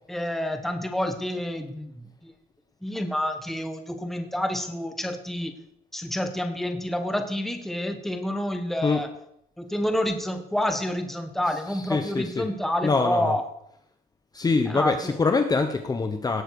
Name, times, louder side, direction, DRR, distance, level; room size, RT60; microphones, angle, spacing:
voice 1, 0.1-2.3 2.8-5.5 5.9-9.1 9.6-13.4 14.7-15.1, left 1 dB, ahead, 6 dB, 1.3 m, -28 dB
voice 2, 11.4-12.5 12.8-13.3 14.3-16.4, left 4 dB, 20° left, 7 dB, 1.0 m, -25 dB
17.5 x 7.4 x 4.8 m, 0.75 s
cardioid pair, 110°, 17 cm